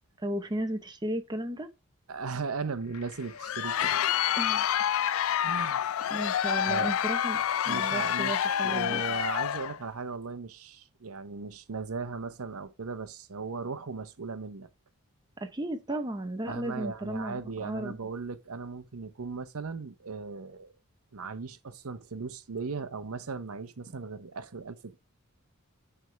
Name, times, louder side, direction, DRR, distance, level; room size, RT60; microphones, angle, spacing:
voice 1, 0.2-1.7 4.3-4.8 5.2-5.4 6.1-9.0 15.4-18.0, right 1 dB, 20° right, 0.7 m, -35 dB
voice 2, 2.1-4.1 5.4-5.9 6.5-7.1 7.7-14.7 16.5-20.7 21.1-25.0, right 4 dB, 75° right, 0.8 m, -37 dB
sound 1, 2.5-7.4, left 6 dB, 85° left, 1.3 m, -49 dB
Crowd, 3.2-9.8, left 10 dB, 65° left, 0.3 m, -28 dB
9.2 x 3.5 x 4.5 m
head